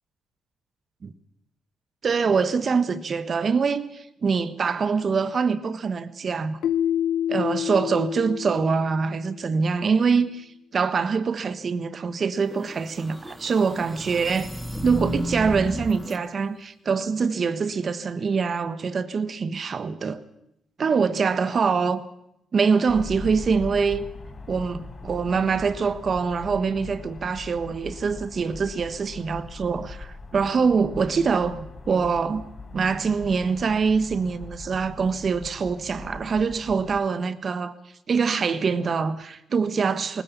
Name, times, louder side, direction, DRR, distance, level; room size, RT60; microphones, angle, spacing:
voice 1, 2.0-6.6 7.3-14.5 14.8-20.2 20.8-22.0 22.5-24.0 24.5-32.4 32.7-37.7 38.1-40.2, right 5 dB, 45° right, 1.4 m, -24 dB
Keyboard (musical), 6.6-9.5, left 10 dB, 75° left, 0.9 m, -28 dB
sound 1, 12.4-16.2, equal, 5° right, 2.1 m, -33 dB
sound 2, 22.9-37.0, left 3 dB, 30° left, 6.2 m, -41 dB
19.5 x 19.5 x 7.1 m
cardioid pair, 90°, 0 cm